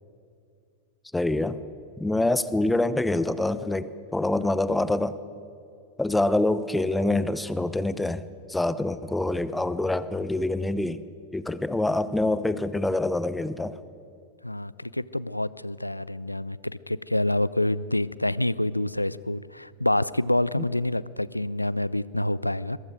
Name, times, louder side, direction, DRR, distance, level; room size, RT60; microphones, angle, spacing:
voice 1, 1.1-1.6 2.0-5.1 6.0-8.2 8.5-11.0 11.3-13.8, left 2 dB, 5° left, 15 dB, 0.9 m, -25 dB
voice 2, 14.4-22.8, left 1 dB, 85° left, 19 dB, 0.5 m, -27 dB
27.5 x 22.5 x 5.1 m, 2.4 s
figure-of-eight pair, 90°, 0 cm